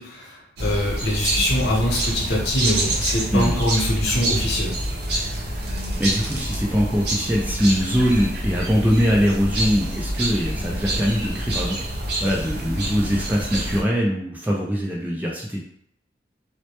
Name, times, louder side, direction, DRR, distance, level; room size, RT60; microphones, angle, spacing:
voice 1, 0.0-4.8, left 1 dB, 70° left, -3 dB, 0.7 m, -23 dB
sound 1, 0.6-13.8, right 1 dB, 65° right, 0.5 m, -27 dB
voice 2, 6.0-11.8 12.2-15.6, equal, 10° right, -3 dB, 0.3 m, -22 dB
2.1 x 2.1 x 2.8 m, 0.69 s
head